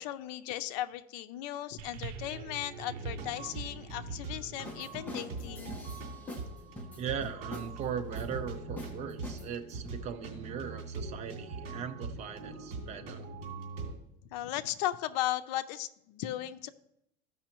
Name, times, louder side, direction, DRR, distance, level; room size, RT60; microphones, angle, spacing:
voice 1, 0.0-5.7 12.8-12.9 14.3-16.7, left 13 dB, 85° left, 10 dB, 0.5 m, -36 dB
sound 1, 1.8-6.3 7.2-7.3, right 7 dB, 85° right, 0.6 m, -47 dB
sound 2, 2.9-13.9, right 3 dB, 60° right, 2.4 m, -42 dB
sound 3, 4.6-6.5 6.8-7.7 8.1-8.5 8.8-8.9 9.2-9.9, left 1 dB, 10° left, 1.1 m, -43 dB
voice 2, 7.0-13.3, right 7 dB, 35° right, 7 dB, 0.7 m, -39 dB
14.0 x 5.5 x 3.0 m, 0.78 s
cardioid pair, 155°, 20 cm